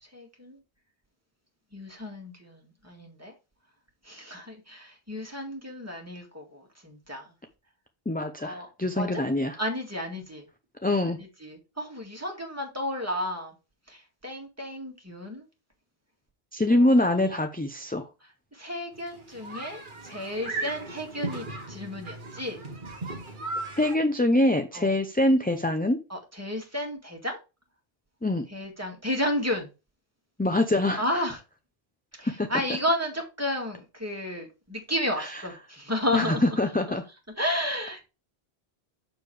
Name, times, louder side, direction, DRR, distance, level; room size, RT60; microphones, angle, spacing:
voice 1, 0.1-0.6 1.7-3.3 4.0-7.3 8.4-8.7 9.0-9.2 9.6-10.4 11.4-13.5 13.9-15.4 16.7-17.4 18.5-22.6 24.7-24.9 26.1-27.4 28.5-29.7 31.0-31.4 32.2-36.6 36.9-37.0 37.4-38.1, left 1 dB, 15° right, 2.1 m, -32 dB
voice 2, 8.1-9.6 10.8-11.2 16.5-18.0 23.8-26.0 28.2-28.5 30.4-31.0 32.2-32.5 35.2-35.4 36.1-37.0, left 1 dB, 10° left, 0.5 m, -24 dB
sound 1, 18.9-24.0, right 3 dB, 50° right, 1.4 m, -37 dB
6.8 x 6.6 x 3.3 m
omnidirectional pair, 1.1 m